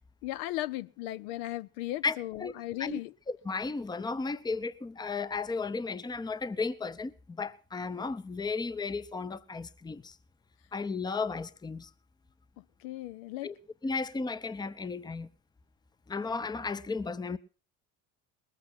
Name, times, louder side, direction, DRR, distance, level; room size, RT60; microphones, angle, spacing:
voice 1, 0.2-3.1 12.8-13.5, left 16 dB, 65° left, 0.6 m, -36 dB
voice 2, 2.0-2.5 2.8-3.0 3.3-10.2 10.7-11.9 13.4-13.5 13.8-15.3 16.1-17.4, left 4 dB, 10° left, 0.6 m, -34 dB
20.0 x 8.4 x 6.0 m
hypercardioid pair, 70°, 44 cm